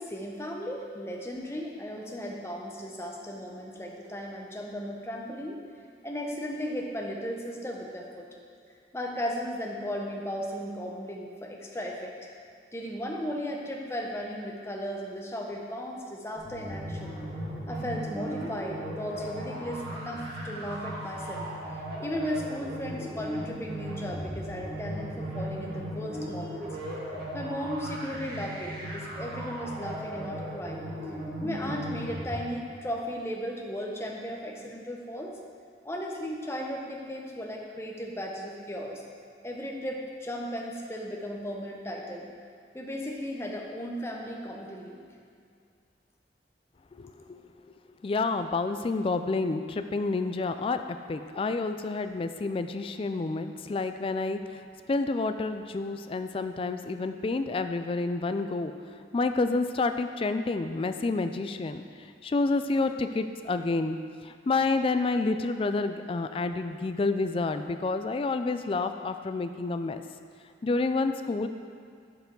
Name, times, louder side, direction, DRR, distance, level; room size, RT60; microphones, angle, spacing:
voice 1, 0.0-5.6 6.0-8.2 8.9-12.2 12.7-17.1 17.7-21.4 22.0-26.7 27.3-30.8 31.4-35.3 35.8-39.0 39.4-42.3 42.7-45.0, equal, 15° left, -1 dB, 0.8 m, -36 dB
sound 1, 16.4-32.4, equal, 55° right, 1.6 m, -37 dB
voice 2, 46.9-47.7 48.0-50.8 51.1-58.7 59.1-64.0 64.2-70.0 70.6-71.5, left 3 dB, 30° left, 8 dB, 0.3 m, -29 dB
8.1 x 6.9 x 3.8 m, 2.3 s
head